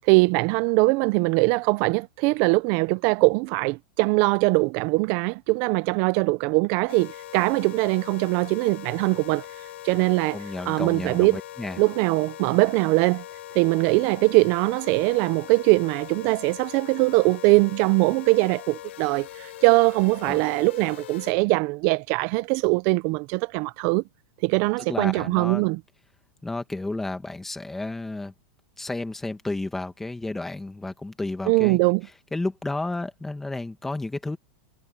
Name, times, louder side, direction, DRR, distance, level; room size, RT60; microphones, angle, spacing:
voice 1, 0.1-9.4 9.8-10.4 10.7-11.4 11.8-13.2 13.5-24.0 24.4-25.8 31.5-32.1, right 25 dB, 35° right, 0.5 m, -22 dB
sound 1, 6.9-21.3, left 14 dB, 80° left, 2.6 m, -41 dB
voice 2, 10.3-11.8 20.2-20.4 24.9-25.7 26.4-28.3 28.8-31.8 32.3-34.4, left 2 dB, 5° left, 1.7 m, -32 dB
supercardioid pair, 165°, 6 cm